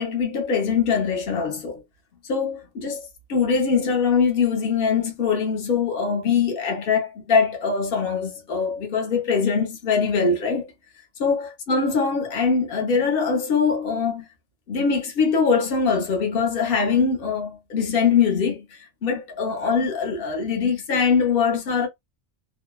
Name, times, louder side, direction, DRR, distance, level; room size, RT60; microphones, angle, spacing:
voice 1, 0.0-1.8 2.3-10.7 11.2-14.3 14.7-21.9, left 5 dB, 50° left, 0.9 m, -22 dB
2.7 x 2.1 x 2.3 m
omnidirectional pair, 1.3 m